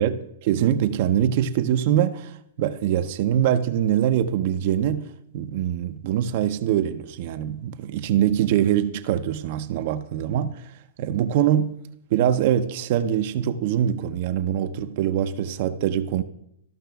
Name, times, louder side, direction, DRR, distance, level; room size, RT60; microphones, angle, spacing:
voice 1, 0.0-5.1 5.3-10.6 11.0-11.7 12.1-16.2, right 10 dB, 50° right, 0.6 m, -23 dB
13.5 x 5.7 x 3.4 m
hypercardioid pair, 130°, 0 cm